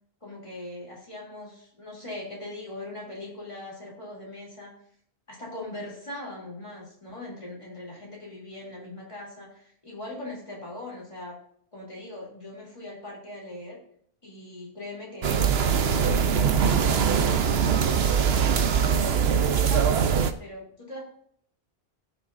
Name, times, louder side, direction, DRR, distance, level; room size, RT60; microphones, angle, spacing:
voice 1, 0.2-4.8 5.3-11.4 11.7-13.8 14.2-20.1 20.4-21.0, left 2 dB, 30° left, -3 dB, 3.2 m, -40 dB
sound 1, 15.2-20.3, right 7 dB, 75° right, 1.0 m, -22 dB
17.5 x 6.4 x 2.6 m, 0.65 s
omnidirectional pair, 1.1 m